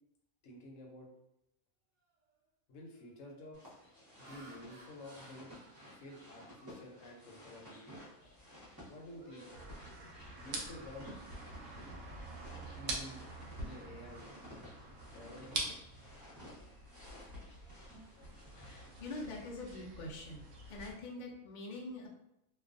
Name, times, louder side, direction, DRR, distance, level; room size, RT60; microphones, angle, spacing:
voice 1, 0.4-1.1 2.7-3.7 4.2-5.6 5.9-7.8 8.9-9.5 10.3-11.1 12.8-13.2 13.6-14.3 15.1-15.7, left 1 dB, 70° left, 0 dB, 0.9 m, -51 dB
Laughter, 2.1-2.4 2.9-3.2 3.8-7.7 8.1-8.3 8.7-10.7, right 2 dB, 85° right, 0.4 m, -61 dB
sound 1, 3.5-19.2, equal, 20° right, 0.6 m, -55 dB
sound 2, 9.5-20.9, right 2 dB, 70° right, 0.9 m, -46 dB
voice 2, 18.4-22.1, left 2 dB, 85° left, -1 dB, 0.4 m, -45 dB
2.3 x 2.2 x 2.5 m, 0.85 s
omnidirectional pair, 1.5 m